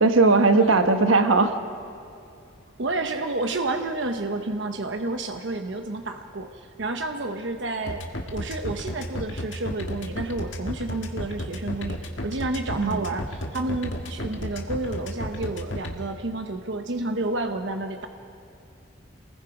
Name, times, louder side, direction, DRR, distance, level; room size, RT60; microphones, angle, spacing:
voice 1, 0.0-1.5 12.8-13.0, right 3 dB, 85° right, 7 dB, 1.3 m, -18 dB
voice 2, 0.5-0.9 2.8-8.0 8.3-18.1, right 2 dB, 60° right, 5 dB, 1.0 m, -30 dB
sound 1, 7.9-15.9, left 1 dB, 70° left, 1.8 m, -32 dB
27.5 x 20.5 x 5.0 m, 2.6 s
head